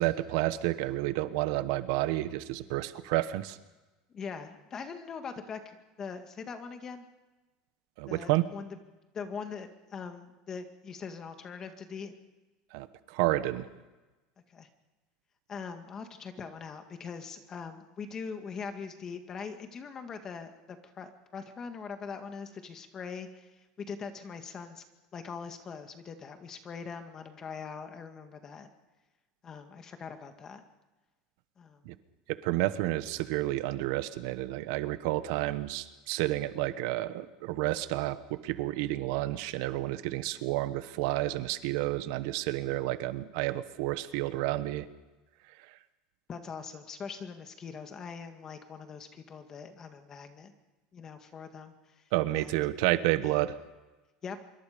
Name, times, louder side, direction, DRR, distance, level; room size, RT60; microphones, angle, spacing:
voice 1, 0.0-3.6 8.0-8.4 12.7-13.7 31.8-31.9 32.3-44.9 45.7-45.8 52.1-53.6, right 16 dB, 65° right, 13 dB, 1.1 m, -30 dB
voice 2, 4.1-7.1 8.1-8.8 9.1-12.2 14.5-14.7 15.5-23.5 23.8-24.8 25.1-28.7 29.4-30.6 31.6-31.9 46.3-50.5 50.9-52.0 52.3-52.5 53.2-53.4 54.2-54.4, left 5 dB, 25° left, 7 dB, 1.9 m, -42 dB
25.5 x 23.5 x 5.2 m, 1.1 s
cardioid pair, 160°, 2 cm